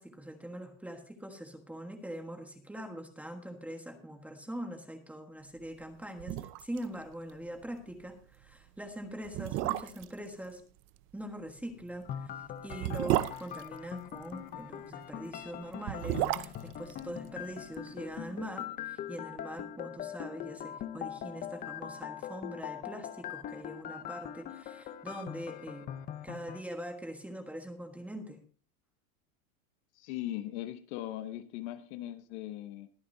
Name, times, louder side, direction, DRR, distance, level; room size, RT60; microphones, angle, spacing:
voice 1, 0.0-10.6 11.1-25.9 26.2-28.4, right 1 dB, 5° right, 4 dB, 1.4 m, -43 dB
sound 1, 5.8-5.9 6.2-6.9 7.1-7.2 7.6-7.8 8.5-8.6 9.2-10.2 11.7-14.4 15.6-17.9 18.1-18.2, right 15 dB, 30° right, 0.5 m, -33 dB
sound 2, 12.0-26.6, left 10 dB, 20° left, 0.7 m, -42 dB
voice 2, 29.9-32.9, left 14 dB, 55° left, 11 dB, 1.0 m, -39 dB
21.5 x 9.3 x 2.7 m, 0.40 s
supercardioid pair, 155°, 41 cm